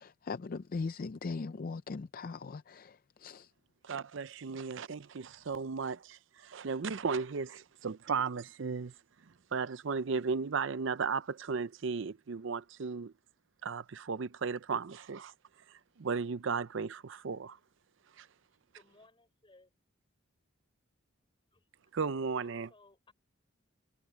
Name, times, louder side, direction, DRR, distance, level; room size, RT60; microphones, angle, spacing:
voice 1, 0.0-3.5, left 4 dB, 45° left, 0.4 m, -39 dB
voice 2, 3.8-8.9 9.5-13.1 13.6-15.3 16.0-17.6 18.2-18.3 21.9-22.7, right 5 dB, 65° right, 0.5 m, -35 dB
voice 3, 18.7-19.7 21.5-21.7 22.4-23.1, left 2 dB, 25° left, 4.7 m, -62 dB
head